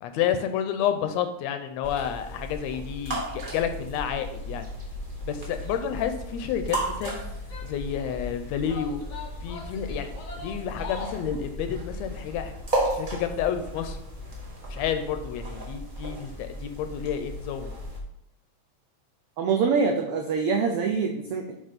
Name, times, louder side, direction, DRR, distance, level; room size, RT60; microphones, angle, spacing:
voice 1, 0.0-4.7 5.2-7.2 7.6-9.0 9.4-12.5 12.9-14.0 14.7-17.7, left 9 dB, 80° left, 8 dB, 1.6 m, -30 dB
sound 1, 1.8-18.0, right 1 dB, 50° right, 0.5 m, -35 dB
Female speech woman speaking / Yell, 6.9-8.2 8.7-11.3, left 4 dB, 55° left, 1.1 m, -41 dB
voice 2, 19.4-21.5, right 5 dB, 85° right, 3 dB, 1.3 m, -24 dB
8.0 x 3.6 x 5.0 m, 0.80 s
omnidirectional pair, 3.3 m